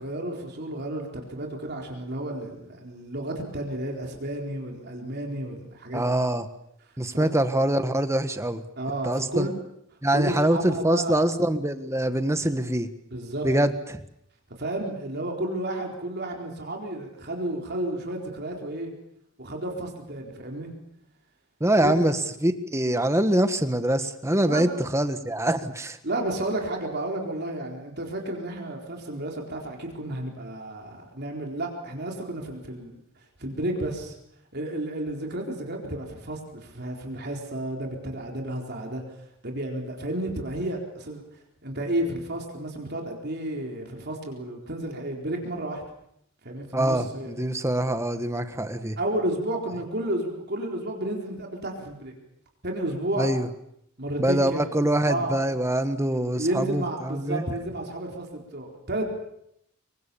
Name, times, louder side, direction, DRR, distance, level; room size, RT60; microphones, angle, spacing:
voice 1, 0.0-6.1 7.1-7.3 8.8-9.5 10.1-11.2 13.1-13.5 14.6-18.9 19.4-20.7 21.8-21.9 24.4-24.8 26.0-33.0 33.4-34.2 34.5-39.0 39.4-41.2 41.6-45.8 46.4-47.3 49.0-52.1 52.6-53.3 54.0-54.6 55.0-55.4 56.3-59.1, right 1 dB, 50° right, 1 dB, 4.2 m, -32 dB
voice 2, 5.9-6.5 7.0-8.6 9.0-9.5 10.0-12.9 13.4-14.0 21.6-26.0 46.7-49.0 53.2-53.5 54.2-57.4, right 1 dB, 15° right, 9 dB, 1.5 m, -24 dB
27.0 x 24.0 x 7.1 m, 0.76 s
head